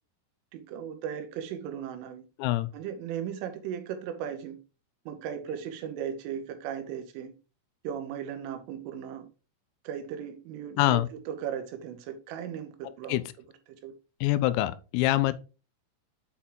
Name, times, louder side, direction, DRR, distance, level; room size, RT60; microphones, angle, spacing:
voice 1, 0.5-2.2 2.7-4.6 5.1-7.3 7.8-9.3 9.8-11.0 11.3-13.2 13.8-13.9, right 8 dB, 80° right, 3.2 m, -37 dB
voice 2, 2.4-2.7 10.8-11.1 13.1-13.2 14.2-15.3, left 16 dB, 85° left, 3.3 m, -25 dB
8.4 x 4.4 x 3.7 m
omnidirectional pair, 6.0 m